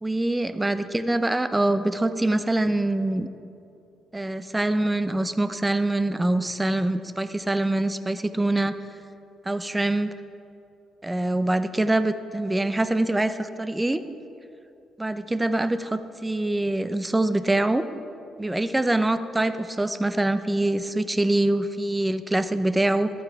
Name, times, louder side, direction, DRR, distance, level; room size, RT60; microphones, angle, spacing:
voice 1, 0.0-3.3 4.1-8.8 9.4-10.1 11.0-14.0 15.0-17.8 18.4-23.1, right 1 dB, 15° right, 11 dB, 0.7 m, -24 dB
13.5 x 9.3 x 4.6 m, 2.8 s
supercardioid pair, 55°, 0 cm